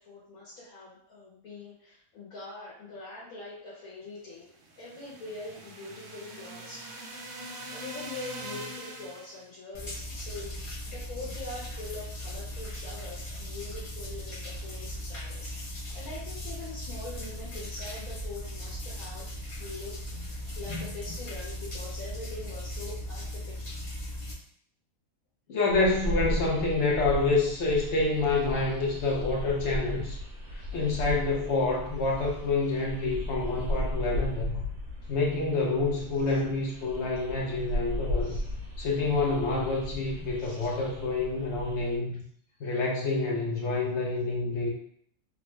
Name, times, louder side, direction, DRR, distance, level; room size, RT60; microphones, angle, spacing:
voice 1, 0.0-4.5 4.8-6.9 7.7-19.2 19.6-19.9 20.3-23.5 36.3-36.4 38.2-38.4 40.4-40.7, left 3 dB, 85° left, -7 dB, 1.4 m, -43 dB
sound 1, 4.5-9.5, right 1 dB, 65° right, 0.9 m, -42 dB
sound 2, 9.7-24.3, equal, 35° left, 0.5 m, -38 dB
voice 2, 25.5-30.2 30.5-34.6 35.1-38.4 38.8-42.2 42.6-44.7, left 3 dB, 60° left, -1 dB, 0.9 m, -28 dB
sound 3, 25.7-42.0, left 1 dB, 85° right, 1.2 m, -35 dB
3.5 x 2.2 x 3.1 m, 0.66 s
omnidirectional pair, 1.4 m